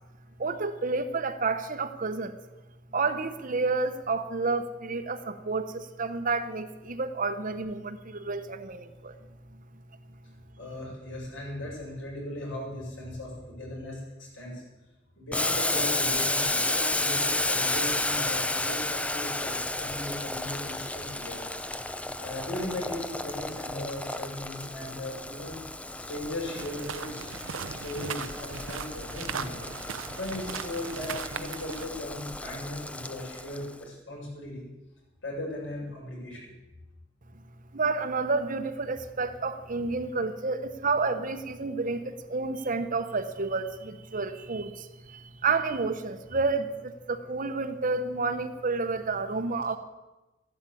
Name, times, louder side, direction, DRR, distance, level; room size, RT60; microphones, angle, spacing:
voice 1, 0.4-2.4 2.9-9.1 37.7-49.8, right 3 dB, 40° right, 9 dB, 1.0 m, -30 dB
voice 2, 10.6-14.6 15.2-21.5 21.9-25.6 26.1-27.3 27.8-29.6 30.1-34.6 35.2-36.5, left 1 dB, 70° left, -3 dB, 7.4 m, -37 dB
Boiling, 15.3-33.7, left 2 dB, 5° left, 0.5 m, -32 dB
sound 1, 26.5-31.9, right 6 dB, 85° right, 0.8 m, -38 dB
14.0 x 11.5 x 8.5 m, 1.1 s
head